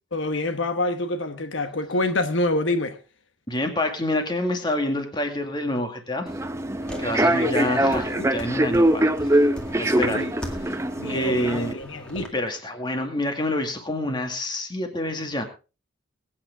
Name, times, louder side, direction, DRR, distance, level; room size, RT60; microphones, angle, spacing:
voice 1, 0.1-3.0 7.0-8.3 9.8-10.3 11.0-12.3, left 2 dB, 75° left, 1.1 m, -27 dB
voice 2, 3.5-6.3 7.0-9.5 9.8-10.3 11.1-11.8 12.2-15.4, left 1 dB, 25° left, 2.1 m, -27 dB
Human voice / Subway metro underground, 6.3-11.7, right 1 dB, 15° right, 0.7 m, -23 dB
sound 1, 6.8-12.3, equal, 5° left, 2.0 m, -40 dB
22.0 x 9.0 x 3.5 m
head